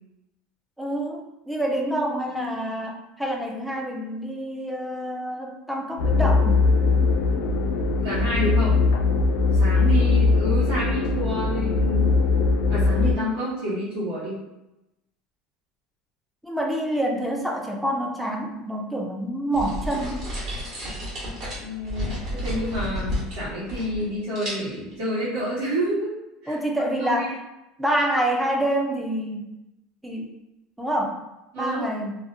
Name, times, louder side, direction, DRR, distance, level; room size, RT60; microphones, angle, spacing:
voice 1, 0.8-6.7 16.4-20.2 26.5-27.4 27.8-29.5 30.0-30.3 30.8-31.2 31.6-32.1, right 1 dB, 5° right, 0 dB, 0.3 m, -27 dB
sound 1, 6.0-13.1, left 3 dB, 85° left, 0.3 m, -20 dB
voice 2, 8.0-8.8 9.5-12.2 12.7-14.4 21.5-26.1 26.4-26.6 27.0-27.3 31.5-31.9, equal, 80° right, -12 dB, 1.1 m, -29 dB
sound 2, 19.5-24.1 24.4-24.9, equal, 45° right, 1.0 m, -31 dB
2.5 x 2.0 x 2.6 m, 0.95 s
cardioid pair, 160°, 0 cm